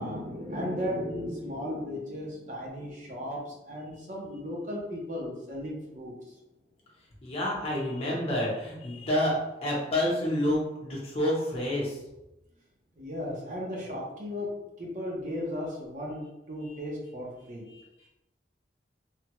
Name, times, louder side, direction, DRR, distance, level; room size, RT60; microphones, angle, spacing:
voice 1, 0.0-6.1 13.0-14.5 14.8-17.6, equal, 45° right, -2 dB, 0.7 m, -35 dB
voice 2, 7.2-12.0 16.6-16.7 17.7-18.1, left 1 dB, 35° left, -4 dB, 0.8 m, -29 dB
3.2 x 2.2 x 2.9 m, 0.95 s
head